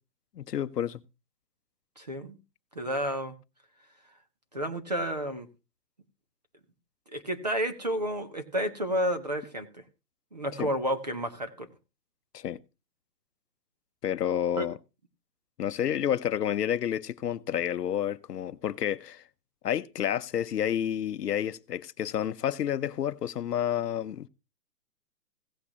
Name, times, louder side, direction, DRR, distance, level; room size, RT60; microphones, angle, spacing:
voice 1, 0.4-1.0 10.6-10.7 12.3-12.6 14.0-14.8 15.6-19.2 19.6-24.3, left 10 dB, 75° left, 0.8 m, -30 dB
voice 2, 2.0-2.4 2.7-3.3 4.5-5.5 7.1-9.8 10.3-11.7 14.6-14.7, equal, 25° right, 0.6 m, -31 dB
16.0 x 8.4 x 2.9 m
hypercardioid pair, 175°, 48 cm